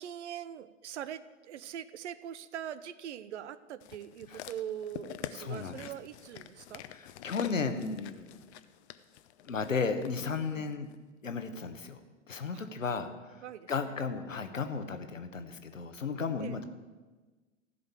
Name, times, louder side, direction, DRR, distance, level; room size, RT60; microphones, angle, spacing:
voice 1, 0.0-6.8 10.5-10.7 12.5-12.6 13.0-13.1 13.4-13.9 16.4-16.6, right 10 dB, 65° right, 16 dB, 0.7 m, -42 dB
sound 1, 3.8-10.2 10.9-11.0, left 11 dB, 60° left, 0.7 m, -46 dB
voice 2, 5.3-5.9 6.9-8.4 9.4-10.9 11.2-12.0 12.3-13.4 13.7-16.7, left 5 dB, 85° left, 8 dB, 1.1 m, -34 dB
15.0 x 5.2 x 7.4 m, 1.3 s
figure-of-eight pair, 95°, 38 cm